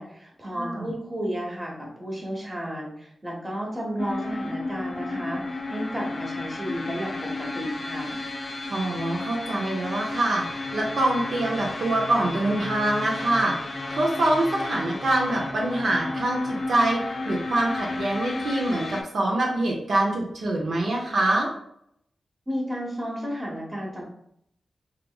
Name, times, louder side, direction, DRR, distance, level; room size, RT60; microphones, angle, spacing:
voice 1, 0.0-8.2 22.5-24.0, equal, 25° right, -2 dB, 1.0 m, -33 dB
voice 2, 0.5-0.9 8.7-21.5, right 1 dB, 75° right, -1 dB, 0.6 m, -25 dB
sound 1, 4.0-19.0, left 2 dB, 45° left, 0.4 m, -33 dB
2.9 x 2.8 x 2.2 m, 0.72 s
cardioid pair, 75°, 0 cm